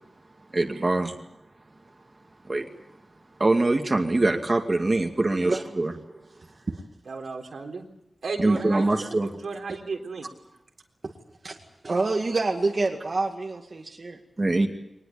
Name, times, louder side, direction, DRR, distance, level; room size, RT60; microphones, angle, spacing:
voice 1, 0.5-1.1 2.5-2.7 3.4-5.9 8.4-9.3 14.4-14.7, right 2 dB, 35° right, 3 dB, 2.4 m, -23 dB
voice 2, 7.1-7.8 8.2-8.9 9.4-10.3, right 4 dB, 90° right, 2 dB, 3.7 m, -33 dB
voice 3, 11.8-14.2, right 3 dB, 50° right, 1 dB, 2.1 m, -27 dB
22.5 x 20.0 x 8.7 m, 0.82 s
wide cardioid pair, 80°, 0 cm